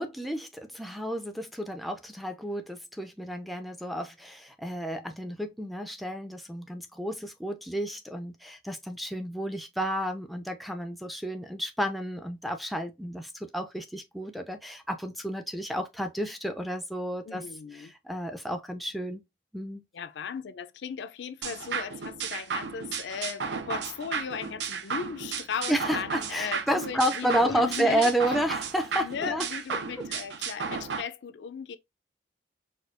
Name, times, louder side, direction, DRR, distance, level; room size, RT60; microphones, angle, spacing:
voice 1, 0.0-17.4 17.8-19.2 19.5-19.8 25.7-29.5, right 1 dB, ahead, 0.3 m, -31 dB
voice 2, 17.2-17.9 19.9-28.1 28.9-31.8, left 7 dB, 80° left, 0.4 m, -37 dB
sound 1, 21.4-31.0, right 6 dB, 80° right, 0.5 m, -34 dB
4.2 x 2.3 x 2.4 m
head